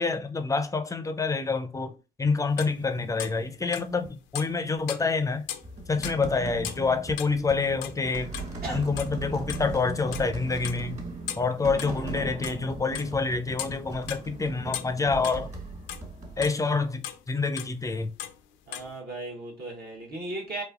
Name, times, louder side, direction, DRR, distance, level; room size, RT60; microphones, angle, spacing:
voice 1, 0.0-5.5 5.9-8.4 8.7-11.0 11.4-15.5 16.4-18.1, left 4 dB, 15° left, 0.5 m, -27 dB
sound 1, 2.5-4.1 4.3-7.4 7.7-8.7 9.0-9.1 9.4-10.3 10.6-11.9 12.3-13.1 13.5-14.3 14.7-16.8 17.0-17.2 17.6-18.4 18.7-18.9, left 11 dB, 65° left, 0.5 m, -38 dB
sound 2, 5.6-16.5, right 2 dB, 35° right, 1.5 m, -38 dB
voice 2, 18.7-20.6, right 2 dB, 50° right, 1.0 m, -36 dB
4.0 x 2.5 x 2.4 m
hypercardioid pair, 50°, 20 cm